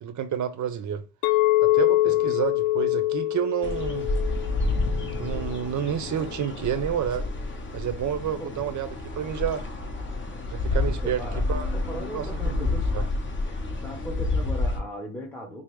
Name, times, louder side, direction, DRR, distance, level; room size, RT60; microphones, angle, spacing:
voice 1, 0.0-1.0 1.6-4.1 5.2-7.3 7.7-9.7 10.5-11.2 11.5-11.7 12.1-13.0, right 9 dB, 45° right, 0.7 m, -29 dB
Chink clink, 1.2-5.5, left 16 dB, 70° left, 0.5 m, -24 dB
voice 2, 2.0-2.4 8.4-8.6 10.8-12.9 13.8-15.6, equal, 5° left, 0.9 m, -38 dB
sound 1, 3.6-14.8, left 2 dB, 30° left, 0.9 m, -29 dB
5.1 x 2.0 x 3.1 m
cardioid pair, 110°, 41 cm